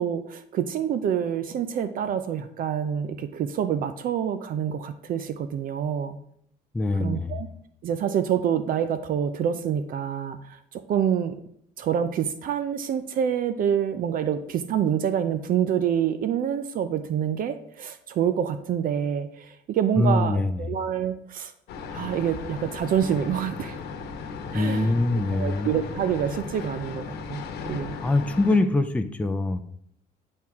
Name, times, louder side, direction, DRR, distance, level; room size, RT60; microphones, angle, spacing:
voice 1, 0.0-6.2 6.9-7.5 7.8-11.4 11.8-21.5 21.9-23.8 24.5-24.9 25.3-28.0, right 9 dB, 55° right, 11 dB, 0.5 m, -27 dB
voice 2, 6.7-7.3 20.0-20.6 24.5-25.7 28.0-29.6, left 2 dB, 10° left, 7 dB, 0.5 m, -23 dB
sound 1, 21.7-28.6, left 5 dB, 75° left, 1.1 m, -36 dB
10.0 x 4.5 x 3.6 m, 0.69 s
cardioid pair, 110°, 17 cm